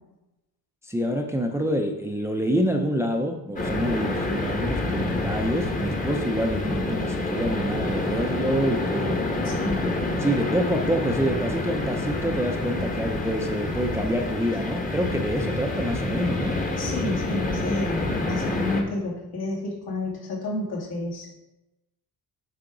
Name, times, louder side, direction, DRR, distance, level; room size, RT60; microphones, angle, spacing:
voice 1, 0.8-9.2 10.2-16.6, equal, 5° right, 3 dB, 0.5 m, -27 dB
sound 1, 3.6-18.8, left 2 dB, 20° left, 1.0 m, -28 dB
voice 2, 9.4-10.0 16.8-21.3, left 2 dB, 75° left, -4 dB, 2.6 m, -30 dB
8.4 x 5.0 x 3.9 m, 0.97 s
cardioid pair, 145°, 39 cm